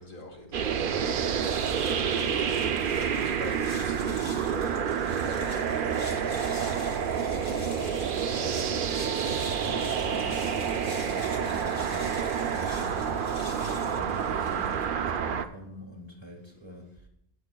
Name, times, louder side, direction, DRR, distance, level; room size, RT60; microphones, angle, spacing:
voice 1, 0.0-1.7 2.0-6.5 7.3-7.8 8.2-9.1, left 2 dB, 55° left, 0 dB, 2.0 m, -44 dB
sound 1, 0.5-15.5, right 7 dB, 60° right, 0.7 m, -28 dB
sound 2, 1.2-14.9, left 2 dB, 80° left, 1.8 m, -45 dB
Wind instrument woodwind instrument, 8.9-13.0, right 4 dB, 10° right, 0.6 m, -43 dB
voice 2, 9.6-12.2 12.5-13.1 13.5-17.1, equal, 25° right, 1 dB, 1.5 m, -45 dB
15.5 x 9.3 x 2.2 m, 0.77 s
omnidirectional pair, 1.0 m